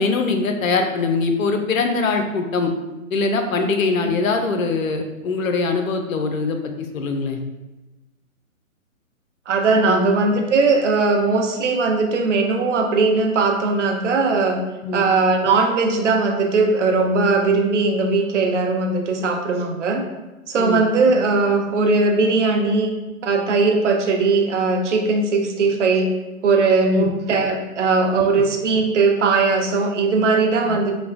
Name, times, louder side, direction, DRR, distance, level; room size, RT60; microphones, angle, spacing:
voice 1, 0.0-2.7 3.1-7.4 9.9-10.1 14.8-15.0 20.6-20.8 26.9-27.1 28.1-28.4 30.7-30.8, left 4 dB, 75° left, 5 dB, 0.5 m, -22 dB
voice 2, 9.5-14.6 14.9-20.0 20.5-22.9 23.2-26.1 26.4-31.0, right 3 dB, 60° right, 3 dB, 0.5 m, -19 dB
3.1 x 2.1 x 2.4 m, 1.1 s
figure-of-eight pair, 140°, 42 cm